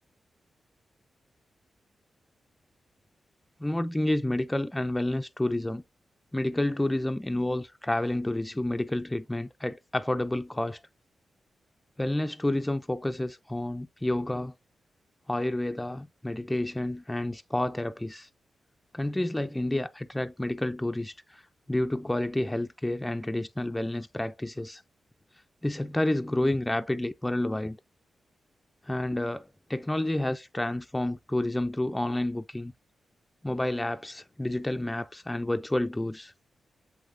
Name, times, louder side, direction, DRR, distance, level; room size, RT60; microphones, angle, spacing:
voice 1, 3.6-5.8 6.3-10.8 12.0-14.5 15.3-18.3 18.9-21.4 21.7-24.8 25.6-27.8 28.9-32.7 33.4-36.3, left 1 dB, 15° left, 0.3 m, -29 dB
7.6 x 2.7 x 2.5 m
cardioid pair, 60°, 0 cm